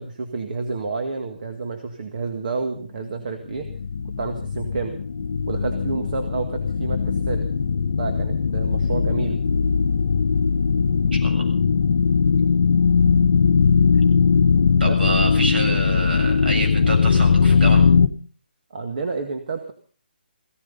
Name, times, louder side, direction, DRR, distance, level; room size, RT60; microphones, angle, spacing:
voice 1, 0.0-3.7 4.2-5.0 5.5-7.4 8.0-9.4 14.8-15.0 18.7-19.7, right 4 dB, 55° right, 5 dB, 1.9 m, -29 dB
sound 1, 3.5-18.1, left 5 dB, 65° left, 0.9 m, -19 dB
voice 2, 11.1-11.5 14.8-17.9, right 2 dB, 70° right, 3 dB, 7.4 m, -27 dB
16.0 x 15.0 x 5.5 m, 0.43 s
hypercardioid pair, 160°, 5 cm